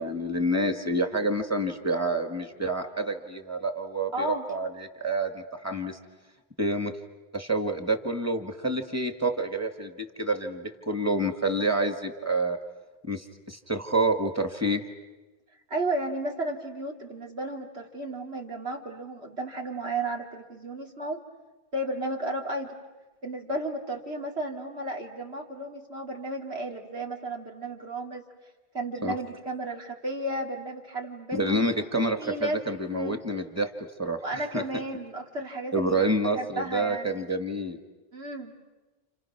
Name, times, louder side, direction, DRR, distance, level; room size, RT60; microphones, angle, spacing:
voice 1, 0.0-6.0 6.6-6.9 7.3-12.6 13.0-14.8 29.0-29.1 31.3-33.7 34.0-34.6 35.7-37.8, right 1 dB, 15° right, 6 dB, 1.8 m, -28 dB
voice 2, 4.1-4.5 15.7-21.2 21.7-22.8 23.2-28.2 28.7-31.6 32.2-32.6 32.9-33.2 34.2-37.1 38.1-38.5, right 1 dB, 90° right, 1 dB, 2.8 m, -33 dB
30.0 x 30.0 x 6.0 m, 1.2 s
omnidirectional pair, 1.1 m